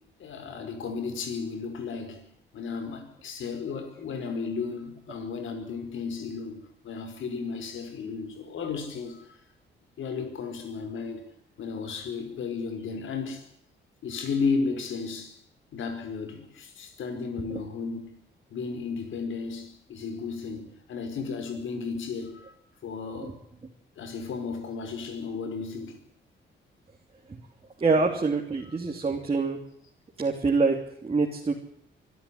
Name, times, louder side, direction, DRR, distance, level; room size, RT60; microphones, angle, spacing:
voice 1, 0.2-9.4 10.0-11.3 11.6-13.4 14.0-15.4 15.7-18.1 18.5-22.5 22.8-23.4 24.0-26.0 28.7-28.8, left 5 dB, 80° left, 5.0 m, -34 dB
voice 2, 27.8-29.6 30.2-30.8 31.0-31.5, right 4 dB, 30° right, 3.0 m, -25 dB
24.5 x 12.5 x 10.0 m
cardioid pair, 105°, 20 cm